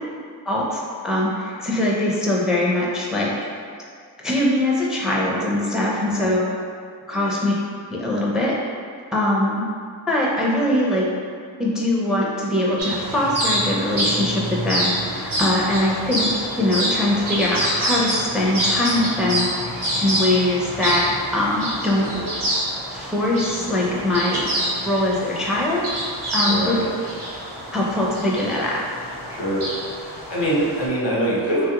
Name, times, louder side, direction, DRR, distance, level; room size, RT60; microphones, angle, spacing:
voice 1, 0.5-3.3 4.2-6.4 7.1-7.5 7.9-8.5 9.1-9.7 10.1-11.0 11.6-19.5 20.0-22.1 22.9-24.5 24.8-26.8 27.7-28.8, left 1 dB, ahead, -4 dB, 0.4 m, -22 dB
voice 2, 6.0-6.4 7.1-7.3 22.1-22.3 26.4-26.9 29.3-29.6 30.3-31.7, right 1 dB, 85° left, -6 dB, 0.9 m, -24 dB
sound 1, 12.8-30.9, equal, 70° right, 0.8 m, -27 dB
3.0 x 2.4 x 2.8 m, 2.2 s
wide cardioid pair, 75°, 42 cm